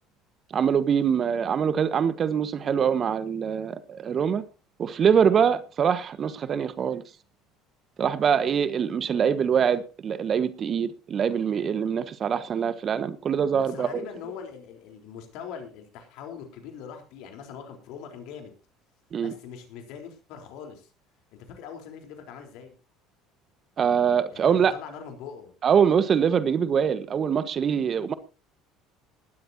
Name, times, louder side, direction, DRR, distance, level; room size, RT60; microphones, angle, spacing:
voice 1, 0.5-4.4 4.8-7.0 8.0-14.0 19.1-19.3 23.8-24.7 25.6-28.1, right 7 dB, 40° right, 1.4 m, -24 dB
voice 2, 13.5-18.5 19.2-20.9 21.3-22.7 24.3-25.5, left 7 dB, 65° left, 3.9 m, -42 dB
19.0 x 13.0 x 2.8 m
hypercardioid pair, 65°, 0 cm